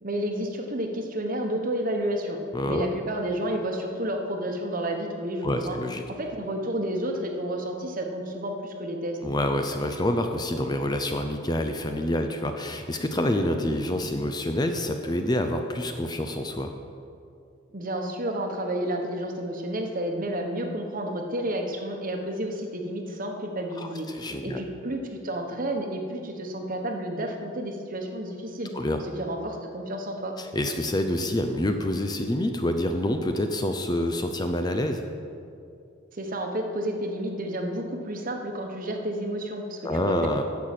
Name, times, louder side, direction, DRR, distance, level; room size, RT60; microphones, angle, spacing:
voice 1, 0.0-2.4 2.6-5.8 6.2-9.2 17.7-24.1 24.4-28.7 29.2-30.3 36.1-40.3, right 1 dB, 40° right, 3 dB, 1.2 m, -31 dB
voice 2, 2.5-2.9 5.4-6.0 9.2-16.7 23.8-24.6 28.7-29.0 30.4-35.0 39.8-40.4, left 1 dB, 20° left, 6 dB, 0.5 m, -27 dB
10.5 x 6.6 x 7.6 m, 2.5 s
head